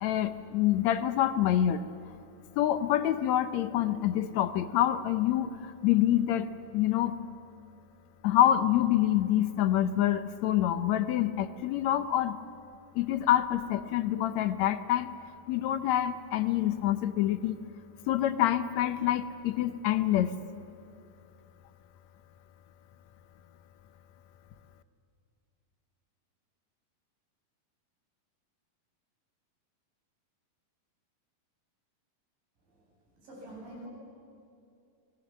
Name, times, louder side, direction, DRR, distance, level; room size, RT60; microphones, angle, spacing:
voice 1, 0.0-1.9 2.6-6.5 6.7-7.2 8.2-12.4 12.9-15.1 15.5-17.6 18.1-20.3, left 12 dB, 80° left, 11 dB, 1.6 m, -26 dB
voice 2, 33.2-33.9, right 1 dB, 70° right, -3 dB, 9.1 m, -44 dB
29.5 x 21.0 x 7.4 m, 2.6 s
omnidirectional pair, 4.1 m